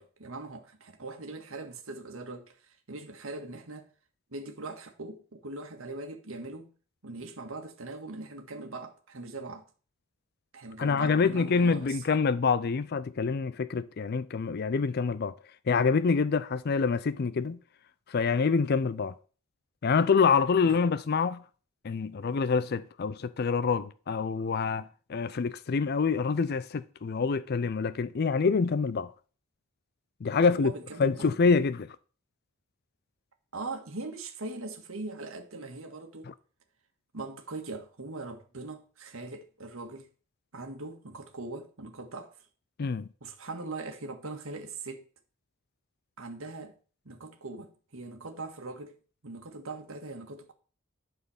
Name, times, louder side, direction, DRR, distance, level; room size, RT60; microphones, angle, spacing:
voice 1, 0.0-3.9 4.3-6.7 7.0-9.6 10.5-12.0 20.6-20.8 30.4-31.3 33.5-36.3 37.1-40.1 40.5-42.3 43.2-45.1 46.2-46.7 47.0-48.9 49.2-50.5, right 3 dB, 90° right, 1.6 m, -41 dB
voice 2, 10.8-15.3 15.7-17.6 18.1-19.1 19.8-21.4 21.8-29.1 30.2-30.7 31.0-31.9 36.3-36.4 42.8-43.1, left 5 dB, 50° left, 0.4 m, -26 dB
11.5 x 4.4 x 7.1 m
head